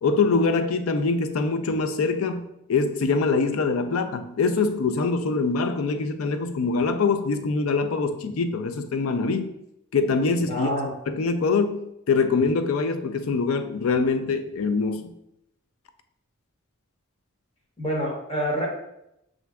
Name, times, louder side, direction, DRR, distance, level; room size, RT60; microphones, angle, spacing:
voice 1, 0.0-2.4 2.7-9.5 9.9-10.7 11.1-15.1, left 4 dB, 85° left, 0.4 m, -24 dB
voice 2, 10.5-10.9 17.8-18.7, equal, 30° left, 0.9 m, -27 dB
7.0 x 2.5 x 2.2 m
head